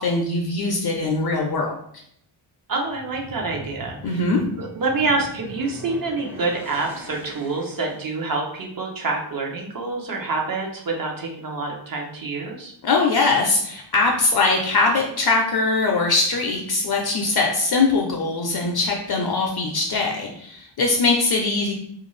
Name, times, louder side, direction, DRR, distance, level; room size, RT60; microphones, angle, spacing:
voice 1, 0.0-1.7 4.0-4.4 12.8-21.7, left 3 dB, 50° left, 1 dB, 0.5 m, -21 dB
voice 2, 2.7-4.2 4.6-12.7, right 3 dB, 45° right, 0 dB, 0.7 m, -27 dB
sound 1, 2.8-8.2, right 1 dB, 5° right, 0.4 m, -41 dB
2.5 x 2.3 x 3.1 m, 0.69 s
wide cardioid pair, 100°, 49 cm